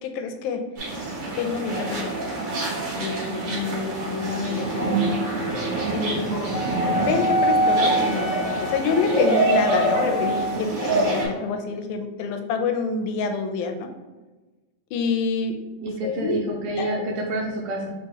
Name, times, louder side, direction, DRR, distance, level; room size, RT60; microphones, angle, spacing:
voice 1, 0.0-0.7 1.4-2.4 2.9-5.6 5.9-6.5 7.0-13.9 14.9-15.6 16.0-16.4 16.8-16.9, left 5 dB, 85° left, 6 dB, 2.0 m, -27 dB
sound 1, 0.8-11.2, right 2 dB, 50° right, 1.6 m, -26 dB
Wind instrument woodwind instrument, 6.5-10.7, equal, 50° left, 1.7 m, -25 dB
voice 2, 15.8-17.9, right 1 dB, 75° right, -1 dB, 1.7 m, -28 dB
4.6 x 3.7 x 3.0 m, 1.2 s
omnidirectional pair, 3.4 m